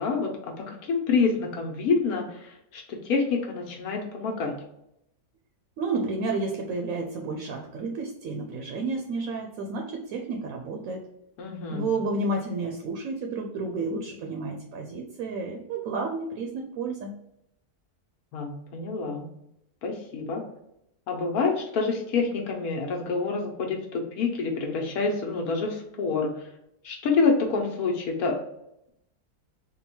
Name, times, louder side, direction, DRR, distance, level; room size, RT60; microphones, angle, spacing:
voice 1, 0.0-4.6 11.4-11.9 18.3-19.3 19.8-20.4 21.1-26.3 26.8-28.4, left 4 dB, 70° left, 1 dB, 1.3 m, -27 dB
voice 2, 5.8-11.0 11.7-17.1, right 3 dB, 70° right, 2 dB, 0.9 m, -31 dB
3.8 x 2.2 x 4.2 m, 0.79 s
omnidirectional pair, 1.7 m